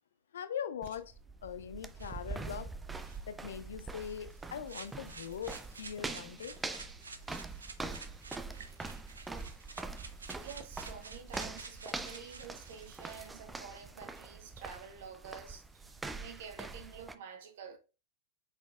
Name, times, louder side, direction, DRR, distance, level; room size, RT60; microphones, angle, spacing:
voice 1, 0.3-1.1 1.4-2.7 3.3-6.6, left 8 dB, 70° left, 0.5 m, -41 dB
sound 1, 0.8-17.1, right 3 dB, 10° right, 0.4 m, -44 dB
sound 2, 2.0-13.8, right 4 dB, 80° right, 0.5 m, -51 dB
voice 2, 9.9-17.8, right 6 dB, 60° right, 1.0 m, -49 dB
5.2 x 4.1 x 2.4 m
figure-of-eight pair, 95°, 0 cm